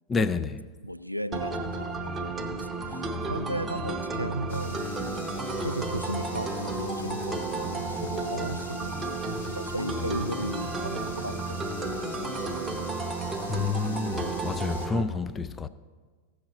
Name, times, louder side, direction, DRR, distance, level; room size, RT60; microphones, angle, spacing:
voice 1, 0.1-0.6 13.5-15.7, left 4 dB, 20° left, 0.4 m, -29 dB
voice 2, 0.8-5.0 5.6-12.9, right 1 dB, 90° right, 0.3 m, -36 dB
sound 1, 1.3-15.0, right 2 dB, 10° right, 0.8 m, -32 dB
sound 2, 4.5-14.9, left 5 dB, 65° left, 1.0 m, -47 dB
15.5 x 6.5 x 4.1 m
figure-of-eight pair, 90°, 0 cm